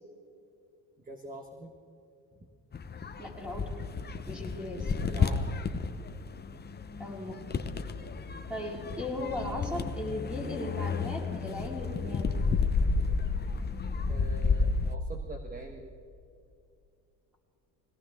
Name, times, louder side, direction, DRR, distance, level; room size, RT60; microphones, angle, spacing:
voice 1, 1.0-1.7 2.3-2.5 5.1-5.4 14.1-15.9, right 1 dB, 20° right, 4 dB, 1.4 m, -44 dB
sound 1, 2.7-14.9, left 4 dB, 25° left, 0.9 m, -31 dB
voice 2, 3.2-3.6 4.3-4.9 7.0-7.4 8.5-12.3, left 1 dB, 5° right, -2 dB, 3.9 m, -37 dB
21.5 x 17.5 x 3.7 m, 2.5 s
cardioid pair, 100°, 40 cm